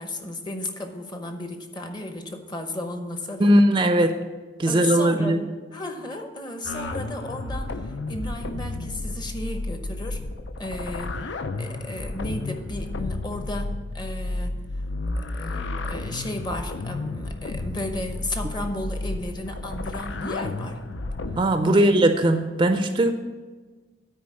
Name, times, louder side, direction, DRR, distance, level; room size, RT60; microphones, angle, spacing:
voice 1, 0.0-3.5 4.7-5.4 5.7-10.2 10.6-14.6 15.2-20.8 21.6-22.0, left 1 dB, 25° left, 6 dB, 0.8 m, -34 dB
voice 2, 3.4-4.2 4.6-5.4 21.4-23.1, right 1 dB, 25° right, 7 dB, 0.4 m, -19 dB
sound 1, 6.6-21.5, left 2 dB, 75° left, 0.6 m, -32 dB
9.4 x 4.6 x 7.5 m, 1.4 s
head